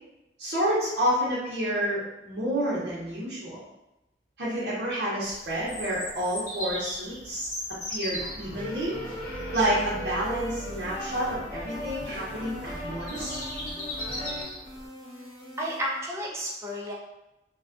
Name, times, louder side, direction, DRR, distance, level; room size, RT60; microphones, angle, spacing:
voice 1, 0.4-3.6 4.4-7.5 7.9-9.0 9.5-13.4, equal, 65° right, -8 dB, 0.6 m, -29 dB
Bird vocalization bird call bird song, 5.2-14.9, equal, 50° left, 0.7 m, -39 dB
sound 1, 8.1-14.4, equal, 15° left, 0.9 m, -37 dB
sound 2, 10.2-16.0, left 1 dB, 85° left, 1.0 m, -46 dB
voice 2, 15.6-16.9, equal, 15° right, -3 dB, 0.4 m, -32 dB
2.4 x 2.2 x 2.5 m, 0.92 s
head